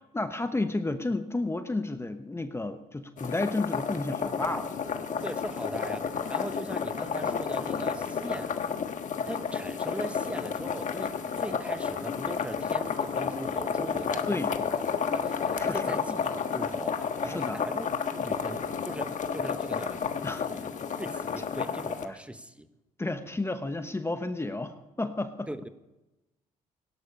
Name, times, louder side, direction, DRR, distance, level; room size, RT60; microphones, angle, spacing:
voice 1, 0.1-4.8 14.3-14.5 15.6-16.0 17.2-17.6 20.2-20.5 23.0-25.5, left 2 dB, 15° left, 8 dB, 1.0 m, -32 dB
sound 1, 3.2-22.1, left 6 dB, 55° left, 1.3 m, -31 dB
voice 2, 5.2-8.6 9.3-14.8 15.1-20.2 20.5-20.7 21.0-22.7 25.5-25.7, right 1 dB, 10° right, 9 dB, 1.2 m, -40 dB
17.0 x 11.5 x 5.4 m, 0.97 s
cardioid pair, 75°, 15 cm